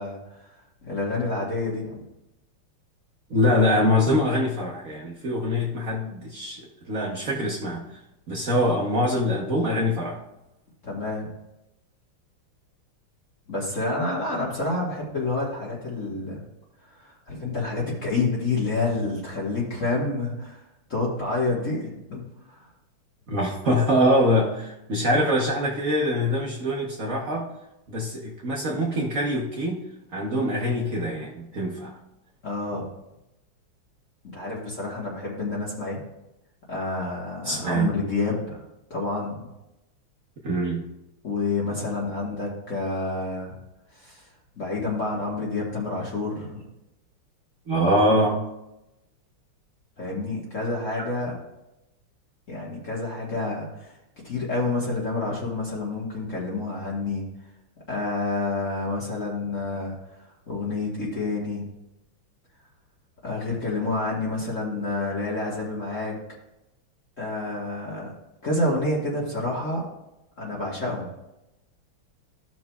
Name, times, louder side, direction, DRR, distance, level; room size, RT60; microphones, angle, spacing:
voice 1, 0.0-2.1 10.8-11.3 13.5-16.4 16.8-20.6 20.9-22.2 22.5-22.7 32.4-32.9 34.3-36.0 36.7-38.6 38.9-39.5 41.2-43.6 43.9-44.2 44.6-46.6 50.0-51.3 52.5-54.0 54.2-57.2 57.9-60.0 60.5-61.6 63.2-66.1 67.2-68.1 68.4-69.9 70.4-71.1, left 2 dB, 40° left, -4 dB, 1.6 m, -28 dB
voice 2, 3.3-7.9 8.3-10.2 23.3-27.5 27.9-29.8 30.1-31.9 37.4-37.9 40.4-40.8 47.7-48.4 50.9-51.1, equal, 55° right, -2 dB, 1.0 m, -24 dB
15.0 x 6.0 x 2.3 m, 0.92 s
omnidirectional pair, 2.4 m